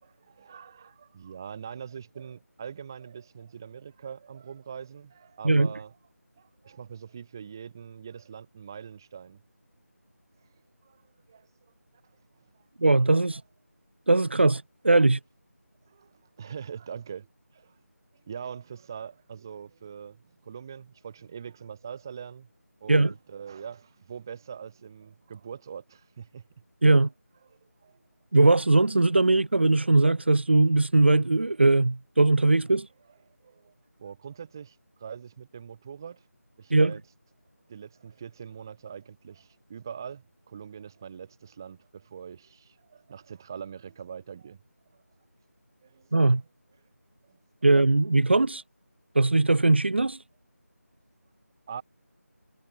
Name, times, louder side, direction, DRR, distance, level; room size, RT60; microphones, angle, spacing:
voice 1, 0.0-6.0 6.4-9.4 10.8-11.0 11.3-11.5 12.4-12.5 13.3-13.4 15.9-17.3 17.5-17.8 18.1-22.5 22.8-26.4 27.5-28.0 33.1-36.3 36.6-37.0 37.7-44.6 44.9-45.0 45.8-46.5 47.2-47.4 51.7-51.8, right 7 dB, 15° right, 4.0 m, -43 dB
voice 2, 12.8-13.4 14.1-15.2 22.9-23.1 26.8-27.1 28.3-32.9 36.7-36.9 46.1-46.4 47.6-48.6 49.1-50.2, right 2 dB, 45° right, 1.0 m, -20 dB
figure-of-eight pair, 175°, 9 cm